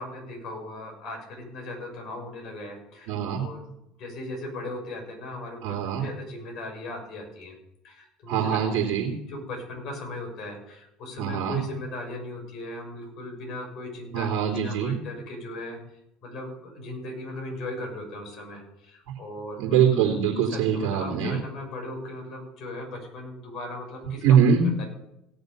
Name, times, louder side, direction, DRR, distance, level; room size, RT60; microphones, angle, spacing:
voice 1, 0.0-3.6 4.0-7.5 7.8-15.8 16.2-19.6 20.4-24.4 24.8-24.9, left 1 dB, 55° left, 1 dB, 6.1 m, -38 dB
voice 2, 3.1-3.5 5.6-6.0 8.3-9.1 11.2-11.6 14.1-14.9 19.6-21.3 24.2-24.6, right 8 dB, 60° right, -3 dB, 3.0 m, -23 dB
17.5 x 6.6 x 6.9 m, 0.84 s
hypercardioid pair, 75°, 0 cm